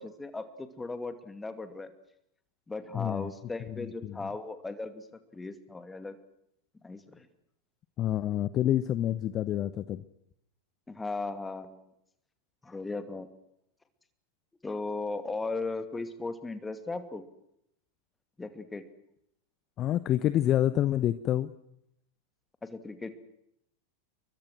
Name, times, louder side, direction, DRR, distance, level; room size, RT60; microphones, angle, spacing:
voice 1, 0.0-1.9 2.7-5.1 5.3-6.2 6.8-7.3 10.9-11.9 12.6-13.3 14.6-17.2 18.4-18.9 22.6-23.1, left 3 dB, 10° left, 9 dB, 2.6 m, -37 dB
voice 2, 2.9-3.3 3.7-4.2 8.0-10.0 19.8-21.5, left 12 dB, 30° left, 14 dB, 1.0 m, -28 dB
30.0 x 23.0 x 6.3 m, 0.76 s
figure-of-eight pair, 90°, 0 cm